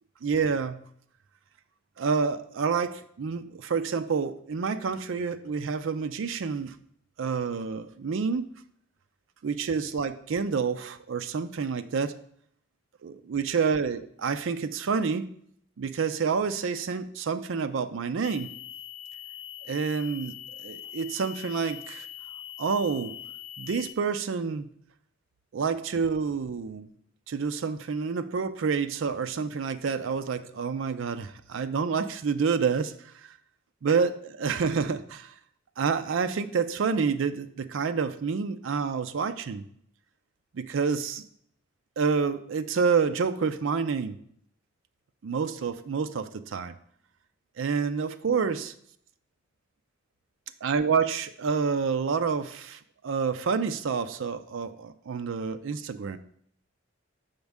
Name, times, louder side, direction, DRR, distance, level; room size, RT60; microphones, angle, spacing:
voice 1, 0.2-0.8 2.0-6.7 7.2-8.5 9.4-12.2 13.0-15.3 15.8-18.5 19.7-20.4 20.6-22.1 22.6-23.2 23.6-24.7 25.5-26.9 27.3-32.9 33.8-34.1 34.4-35.3 35.8-39.6 40.5-41.2 42.0-44.2 45.2-46.7 47.6-48.7 50.6-56.2, right 5 dB, 70° right, 9 dB, 0.4 m, -28 dB
sound 1, 18.2-23.9, left 12 dB, 30° left, 0.3 m, -42 dB
7.1 x 5.3 x 3.5 m, 0.66 s
head